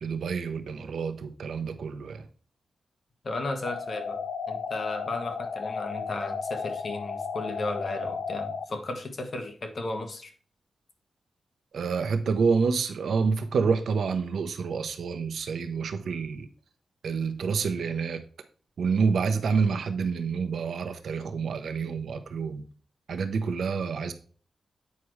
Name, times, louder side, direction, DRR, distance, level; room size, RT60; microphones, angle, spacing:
voice 1, 0.0-2.3 11.7-16.5 17.0-18.2 18.8-22.6 23.1-24.1, right 5 dB, 75° right, 0.8 m, -28 dB
voice 2, 3.2-4.2 4.5-10.3, left 2 dB, 45° left, 1.3 m, -34 dB
sound 1, 3.7-8.7, left 5 dB, 65° left, 0.6 m, -34 dB
8.4 x 5.9 x 3.2 m
wide cardioid pair, 130°, 0 cm